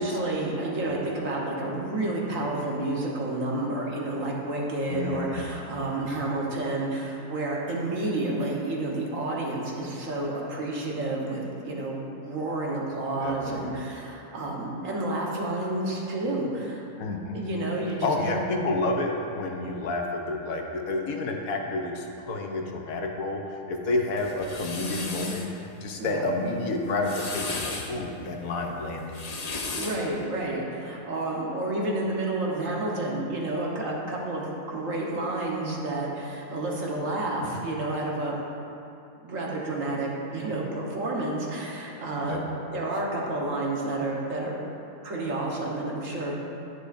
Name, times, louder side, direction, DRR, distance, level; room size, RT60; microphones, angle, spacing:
voice 1, 0.0-16.9 17.3-18.3 26.0-26.3 29.7-38.4 39.2-42.4 42.7-44.6 45.0-46.3, right 2 dB, 60° right, -3 dB, 1.4 m, -30 dB
voice 2, 4.9-5.4 13.2-13.7 17.0-17.3 18.0-29.0 29.5-29.9 42.2-42.4, left 2 dB, 70° left, 1 dB, 1.2 m, -30 dB
sound 1, 24.2-25.5 26.8-27.9 29.0-30.1, left 3 dB, 45° left, 0.5 m, -35 dB
10.0 x 9.1 x 2.5 m, 2.6 s
omnidirectional pair, 1.6 m